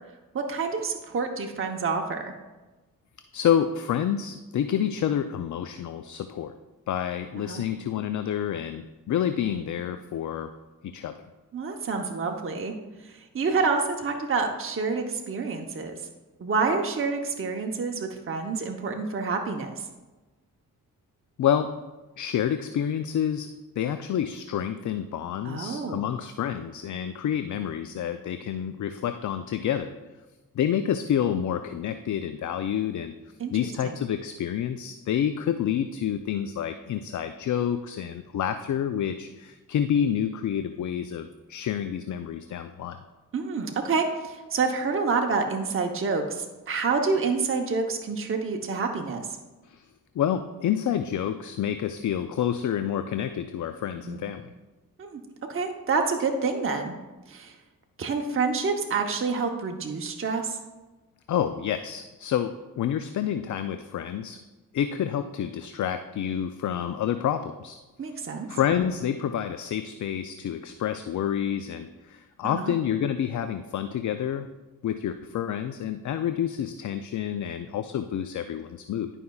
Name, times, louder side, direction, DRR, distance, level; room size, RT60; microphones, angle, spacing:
voice 1, 0.3-2.3 7.4-7.6 11.5-12.7 13.0-16.0 16.4-19.8 25.4-26.0 33.4-33.5 33.8-34.0 43.3-49.4 54.1-54.2 55.0-55.2 55.5-56.9 57.3-57.5 58.0-60.6 68.0-68.5 72.6-72.7, right 4 dB, 40° right, 3 dB, 0.9 m, -28 dB
voice 2, 3.3-6.5 6.9-10.5 10.8-11.2 21.4-21.8 22.2-23.5 23.8-29.9 30.5-33.1 33.5-43.0 49.6-49.9 50.2-54.5 61.3-64.4 64.7-67.8 68.5-74.5 74.8-79.1, left 9 dB, 60° left, 9 dB, 0.5 m, -28 dB
11.5 x 5.4 x 2.3 m, 1.1 s
cardioid pair, 55°, 34 cm